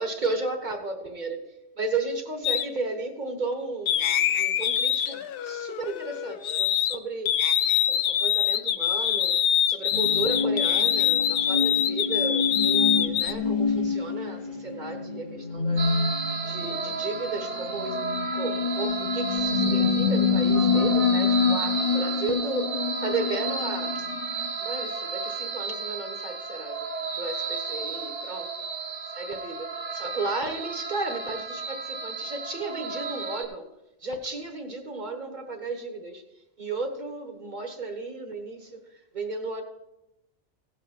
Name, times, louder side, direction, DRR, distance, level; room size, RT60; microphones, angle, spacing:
voice 1, 0.0-1.4 1.7-7.3 7.9-9.4 9.7-15.8 16.4-18.0 18.3-24.0 24.6-26.9 27.2-28.5 29.1-33.7 34.0-36.2 36.6-38.9 39.1-39.6, right 3 dB, 40° right, 6 dB, 1.4 m, -34 dB
sound 1, 2.4-2.7 3.9-7.0 7.3-13.3, left 10 dB, 60° left, 0.7 m, -24 dB
sound 2, 9.9-24.5, left 5 dB, 45° left, 1.1 m, -27 dB
sound 3, 15.8-33.4, right 4 dB, 75° right, 1.6 m, -33 dB
16.5 x 5.5 x 5.8 m, 0.93 s
omnidirectional pair, 1.2 m